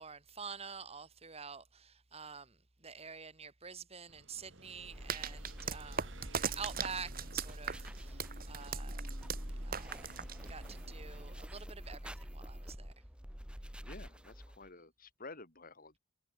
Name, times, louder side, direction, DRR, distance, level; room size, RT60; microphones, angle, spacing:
voice 1, 0.0-9.0 9.6-10.1 10.5-12.9, right 5 dB, 30° right, 2.4 m, -48 dB
sound 1, 4.1-11.4, right 2 dB, 65° right, 2.9 m, -56 dB
sound 2, 4.8-14.7, equal, 5° right, 1.6 m, -46 dB
sound 3, 5.1-10.9, right 7 dB, 45° right, 1.9 m, -40 dB
voice 2, 13.8-16.0, left 3 dB, 45° left, 5.4 m, -51 dB
head